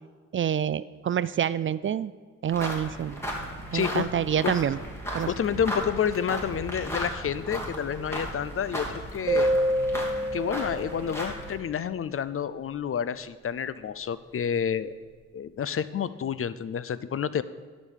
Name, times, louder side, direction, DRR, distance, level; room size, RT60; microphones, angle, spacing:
voice 1, 0.3-2.1 2.4-3.2 3.7-4.8 5.1-5.3, right 9 dB, 40° right, 17 dB, 0.4 m, -27 dB
sound 1, 2.5-11.6, equal, 10° left, 2.9 m, -36 dB
sound 2, 3.1-9.3, right 3 dB, 85° right, 1.3 m, -48 dB
voice 2, 3.7-4.0 4.4-4.5 5.3-9.5 10.3-14.9 15.3-17.4, left 8 dB, 45° left, 16 dB, 0.6 m, -29 dB
sound 3, 9.3-11.5, equal, 15° right, 2.0 m, -27 dB
11.5 x 5.2 x 7.3 m, 1.5 s
cardioid pair, 60°, 30 cm